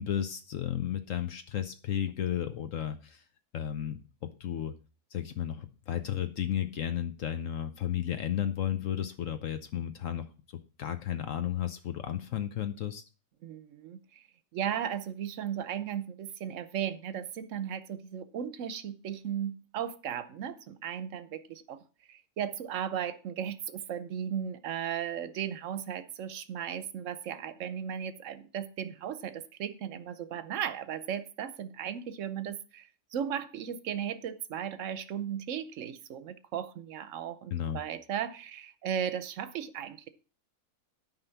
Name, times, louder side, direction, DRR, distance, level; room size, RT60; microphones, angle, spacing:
voice 1, 0.0-3.2 3.5-4.7 5.1-10.3 10.8-13.0 37.5-37.8, left 10 dB, 60° left, 9 dB, 1.0 m, -33 dB
voice 2, 13.4-14.2 14.5-21.8 22.1-40.1, right 9 dB, 60° right, 13 dB, 1.1 m, -36 dB
9.7 x 5.5 x 5.8 m, 0.36 s
omnidirectional pair, 1.6 m